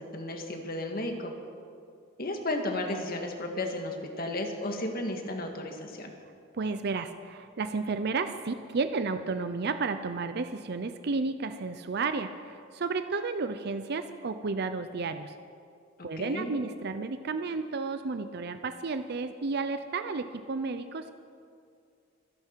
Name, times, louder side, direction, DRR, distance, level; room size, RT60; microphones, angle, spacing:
voice 1, 0.0-1.3 2.2-6.1 16.0-16.5, left 1 dB, 50° left, 3 dB, 1.8 m, -34 dB
voice 2, 6.5-15.3 16.0-21.1, right 4 dB, 55° right, 9 dB, 0.6 m, -32 dB
25.5 x 10.5 x 4.6 m, 2.3 s
head